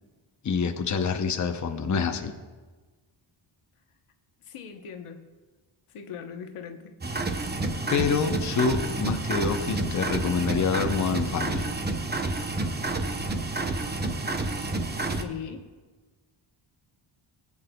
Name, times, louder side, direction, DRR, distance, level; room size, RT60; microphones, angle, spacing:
voice 1, 0.4-2.3 7.9-11.7, left 5 dB, 35° left, 5 dB, 0.7 m, -26 dB
voice 2, 4.4-5.3 5.9-6.9 15.0-15.7, left 7 dB, 85° left, 6 dB, 1.0 m, -40 dB
sound 1, 7.0-15.2, right 2 dB, 20° right, 0.7 m, -29 dB
19.5 x 8.6 x 2.2 m, 1.3 s
wide cardioid pair, 115°, 50 cm